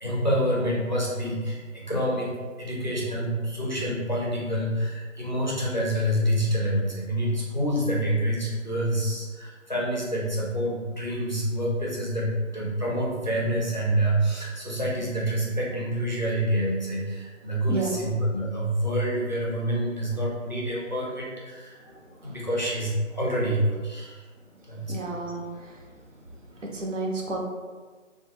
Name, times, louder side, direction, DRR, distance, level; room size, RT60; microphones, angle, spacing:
voice 1, 0.0-21.8 22.2-24.2 24.7-24.9, right 1 dB, 35° left, -5 dB, 0.4 m, -27 dB
voice 2, 17.7-18.0 21.9-22.4 24.9-25.8 26.6-27.4, right 2 dB, 70° right, -1 dB, 0.7 m, -32 dB
2.5 x 2.2 x 2.7 m, 1.4 s
figure-of-eight pair, 160°, 39 cm